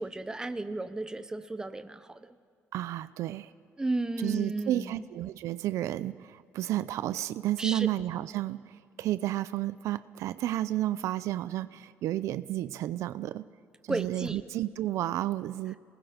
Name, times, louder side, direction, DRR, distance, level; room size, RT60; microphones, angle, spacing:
voice 1, 0.0-2.3 3.8-5.0 7.6-7.9 13.9-14.4, right 2 dB, 15° right, 10 dB, 1.0 m, -33 dB
voice 2, 2.7-3.5 4.2-13.5 13.8-15.8, right 14 dB, 80° right, 14 dB, 0.5 m, -32 dB
27.5 x 20.0 x 5.1 m, 2.1 s
cardioid pair, 105°, 5 cm